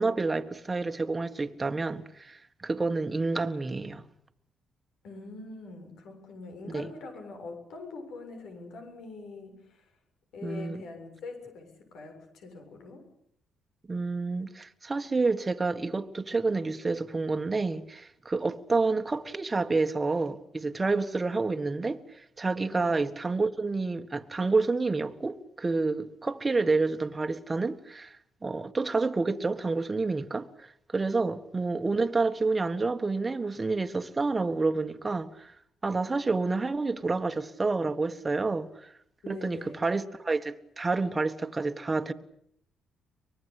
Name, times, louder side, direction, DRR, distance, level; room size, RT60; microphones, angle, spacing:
voice 1, 0.0-4.0 6.7-6.9 10.4-10.8 13.9-28.2 28.4-35.5 35.8-38.9 39.3-42.1, right 3 dB, 25° right, 1.6 m, -29 dB
voice 2, 5.0-9.9 10.3-13.1 22.7-23.0 39.2-39.8, left 3 dB, 80° left, 7.2 m, -43 dB
24.5 x 20.5 x 8.5 m
cardioid pair, 90°, 0 cm